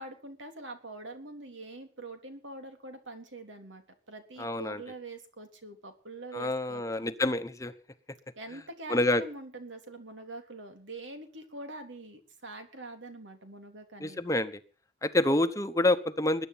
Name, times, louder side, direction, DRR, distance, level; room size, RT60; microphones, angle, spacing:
voice 1, 0.0-7.1 8.4-14.2, right 2 dB, 80° right, 6 dB, 3.6 m, -44 dB
voice 2, 4.4-4.8 6.3-7.7 8.9-9.2 14.0-14.6 15.0-16.5, left 1 dB, 15° left, 9 dB, 1.0 m, -27 dB
21.0 x 10.0 x 5.8 m, 0.40 s
head